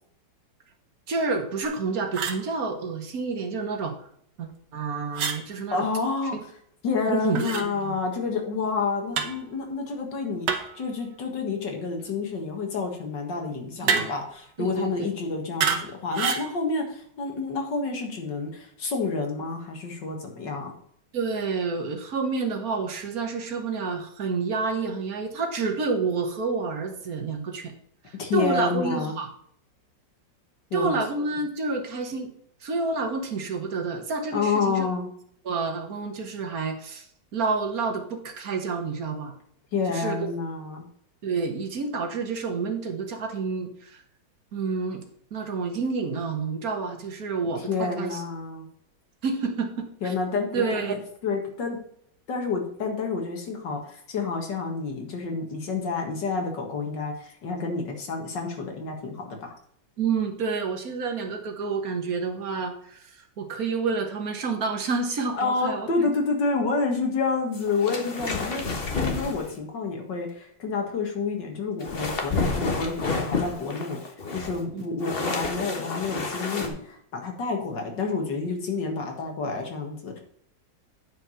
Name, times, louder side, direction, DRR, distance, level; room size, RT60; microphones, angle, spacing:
voice 1, 1.1-3.9 4.4-5.9 7.1-8.0 13.8-14.1 14.6-15.1 21.1-27.7 28.3-29.3 30.7-32.3 32.6-34.9 35.5-37.1 37.3-39.3 39.9-40.1 41.2-43.9 44.5-45.0 45.3-48.2 49.2-50.1 50.5-50.9 60.0-63.1 63.4-65.9 74.7-74.8, right 4 dB, 50° right, 4 dB, 1.8 m, -29 dB
sound 1, 1.6-1.8 2.1-2.4 5.1-5.4 7.4-7.7 9.1-9.4 10.5-10.8 13.9-14.3 15.6-15.9 16.1-16.5, right 6 dB, 70° right, 1.6 m, -27 dB
voice 2, 5.7-6.4 6.8-20.7 28.2-29.2 30.7-31.0 34.3-35.1 39.7-40.8 47.6-48.7 50.0-50.6 50.9-51.8 52.3-59.5 65.3-68.6 68.9-74.0 74.3-80.2, left 4 dB, 70° left, 3 dB, 2.4 m, -29 dB
sound 2, 67.5-69.6 71.8-76.7, left 3 dB, 35° left, 1.3 m, -30 dB
9.3 x 5.0 x 5.7 m, 0.66 s
omnidirectional pair, 2.0 m